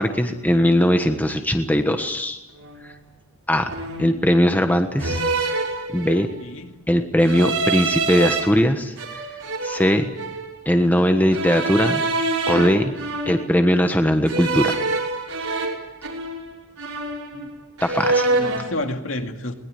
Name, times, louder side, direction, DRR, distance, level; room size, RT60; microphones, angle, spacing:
voice 1, 0.0-2.4 3.5-3.6 4.0-5.2 5.9-6.3 6.9-9.3 9.6-10.1 10.6-12.0 12.5-13.0 13.3-14.8 17.8-18.3, equal, 10° left, 6 dB, 1.3 m, -19 dB
sound 1, 2.6-2.8 3.7-4.2 5.0-6.4 7.2-8.4 9.0-10.5 11.3-13.7 14.3-16.5 16.8-17.5 17.8-18.7, right 3 dB, 90° right, 5.7 m, -26 dB
voice 2, 6.4-6.9 17.3-17.5 18.3-19.5, left 1 dB, 65° left, 5 dB, 2.4 m, -30 dB
22.0 x 20.0 x 9.4 m, 0.92 s
head